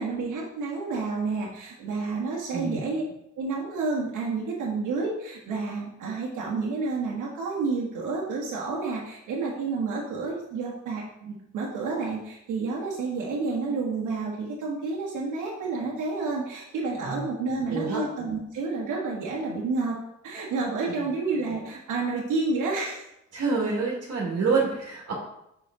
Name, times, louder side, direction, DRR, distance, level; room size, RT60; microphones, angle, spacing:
voice 1, 0.0-3.0 3.4-20.0 20.2-23.1, right 3 dB, 85° right, -4 dB, 1.3 m, -30 dB
voice 2, 17.7-18.0 23.3-25.1, right 4 dB, 55° right, -3 dB, 1.7 m, -27 dB
6.2 x 4.6 x 3.7 m, 0.81 s
cardioid pair, 90°, 30 cm